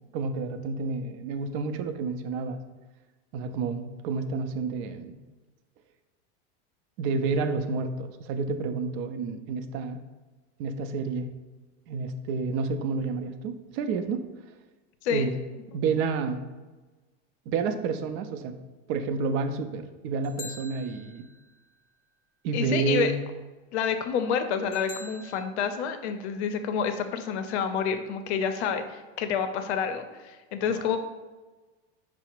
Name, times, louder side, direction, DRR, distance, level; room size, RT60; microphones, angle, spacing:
voice 1, 0.1-2.6 3.3-5.1 7.0-10.0 10.6-11.3 11.9-14.2 15.1-15.3 15.7-16.4 17.5-18.5 18.9-21.3 22.4-23.1 30.7-30.9, right 4 dB, 50° right, 8 dB, 0.5 m, -29 dB
sound 1, 20.2-21.6 24.7-25.4, left 4 dB, 25° left, 0.4 m, -44 dB
voice 2, 22.5-23.1 23.7-31.0, left 7 dB, 75° left, 8 dB, 0.6 m, -28 dB
4.8 x 2.0 x 4.4 m, 1.2 s
supercardioid pair, 130°, 34 cm